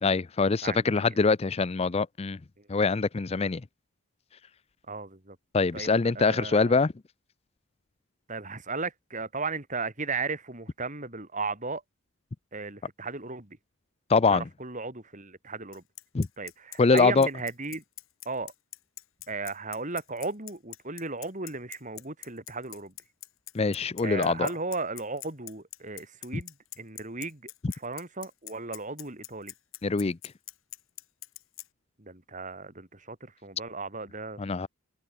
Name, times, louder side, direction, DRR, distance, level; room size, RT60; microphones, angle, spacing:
voice 1, 0.0-2.4 2.7-3.6 5.5-6.9 14.1-14.4 16.1-16.3 16.8-17.3 23.5-24.5 29.8-30.2 34.4-34.7, left 4 dB, 30° left, 0.4 m, -24 dB
voice 2, 0.6-1.2 2.6-2.8 4.9-5.4 5.7-6.8 8.3-11.8 12.5-13.6 14.3-15.8 16.4-17.8 18.3-18.5 19.3-22.9 24.0-29.5 32.0-34.4, right 3 dB, 35° right, 3.6 m, -36 dB
Bicycle, 15.7-31.7, left 16 dB, 65° left, 2.6 m, -43 dB
open air
head